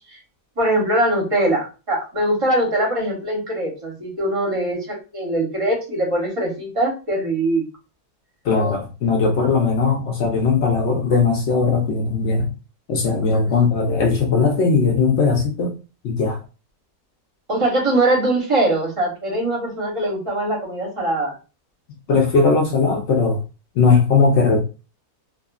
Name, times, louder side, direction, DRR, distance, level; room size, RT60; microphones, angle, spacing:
voice 1, 0.6-7.6 17.5-21.3, right 1 dB, 30° right, 0.7 m, -22 dB
voice 2, 8.4-12.5 12.9-15.7 16.0-16.4 22.1-23.4 23.8-24.6, left 4 dB, 65° left, 0.7 m, -18 dB
2.5 x 2.4 x 2.2 m
omnidirectional pair, 1.7 m